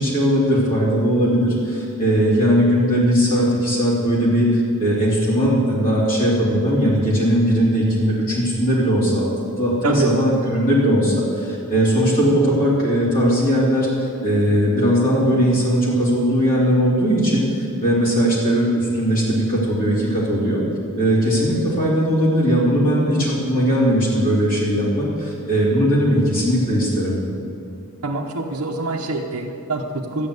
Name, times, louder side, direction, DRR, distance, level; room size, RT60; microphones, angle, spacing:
voice 1, 0.0-9.3 9.6-20.6 21.0-27.2, equal, 40° left, -7 dB, 3.3 m, -19 dB
voice 2, 9.8-10.1 28.0-30.3, right 3 dB, 70° right, -2 dB, 1.0 m, -25 dB
13.0 x 8.7 x 8.2 m, 2.6 s
head